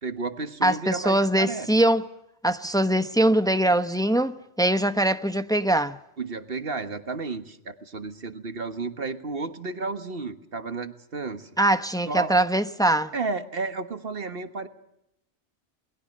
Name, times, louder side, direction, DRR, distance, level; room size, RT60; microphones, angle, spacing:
voice 1, 0.0-1.7 6.2-11.5 12.1-12.3 13.1-14.7, right 3 dB, 55° right, 1.6 m, -32 dB
voice 2, 0.6-2.0 2.4-6.0 11.6-13.1, right 1 dB, 5° left, 0.7 m, -22 dB
29.0 x 21.0 x 6.6 m
omnidirectional pair, 1.2 m